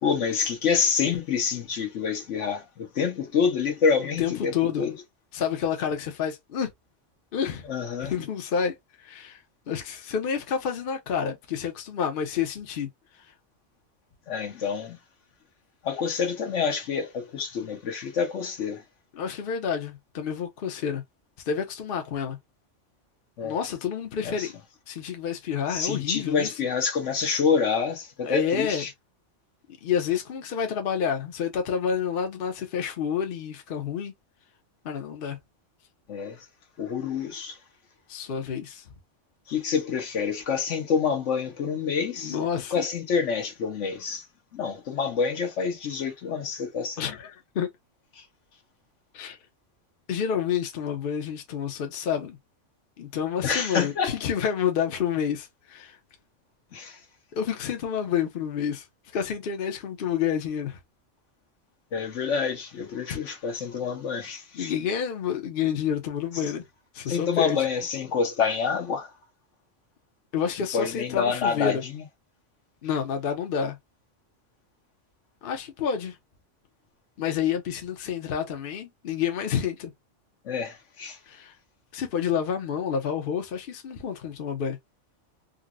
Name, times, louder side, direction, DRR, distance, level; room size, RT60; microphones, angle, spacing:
voice 1, 0.0-4.9 7.7-8.1 14.3-15.0 15.8-18.8 23.4-23.6 24.2-24.5 25.7-28.9 36.1-36.5 36.8-37.6 39.5-42.4 42.7-44.3 44.5-47.1 48.2-48.3 53.4-54.2 56.7-57.0 61.9-64.7 67.1-69.1 70.7-72.0 80.4-81.2, left 6 dB, 75° left, 1.2 m, -27 dB
voice 2, 4.2-4.9 5.3-6.7 7.3-7.7 8.0-12.9 19.1-21.0 21.4-22.4 23.4-24.6 24.9-26.5 28.3-28.8 29.7-34.1 34.8-35.4 38.1-38.9 42.2-42.7 47.0-47.7 49.1-49.4 50.1-52.4 53.0-56.0 57.3-58.9 59.1-60.8 63.1-63.2 64.5-66.6 66.9-67.6 70.3-71.8 72.8-73.8 75.4-76.2 77.2-79.9 81.3-81.5 81.9-84.8, left 7 dB, 55° left, 0.8 m, -29 dB
3.9 x 2.0 x 2.3 m
omnidirectional pair, 1.3 m